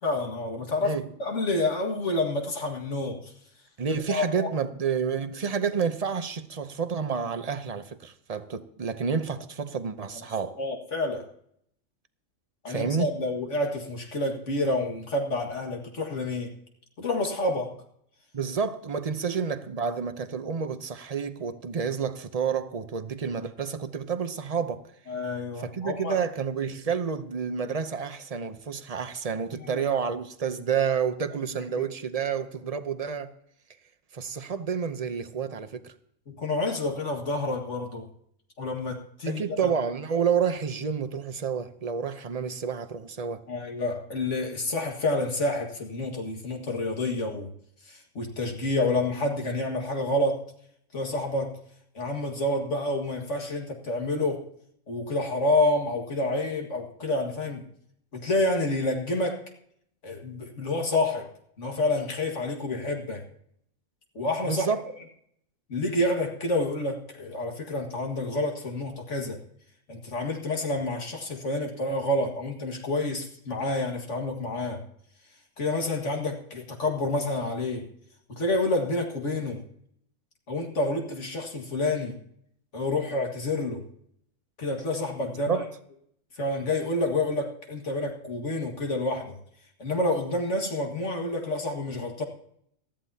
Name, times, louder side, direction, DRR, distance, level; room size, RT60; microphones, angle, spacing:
voice 1, 0.0-3.3 4.1-4.5 10.6-11.3 12.6-16.5 17.0-17.7 19.3-19.4 25.1-26.2 29.6-29.8 31.8-31.9 36.3-38.1 38.6-39.7 43.5-47.5 47.8-50.4 50.9-51.6 51.9-54.5 54.9-57.7 58.1-59.4 60.0-61.3 61.6-63.2 64.2-64.7 65.7-69.4 69.9-74.8 75.6-77.9 78.3-79.6 80.5-82.2 82.7-83.8 84.6-85.6 86.4-89.4 89.8-92.2, left 2 dB, 65° left, 2.2 m, -28 dB
voice 2, 3.8-10.6 12.7-13.1 18.3-24.9 25.6-33.3 34.1-35.9 39.2-43.4 64.4-64.8 85.5-85.7, right 6 dB, 35° right, 0.7 m, -29 dB
19.0 x 14.0 x 2.8 m
omnidirectional pair, 1.3 m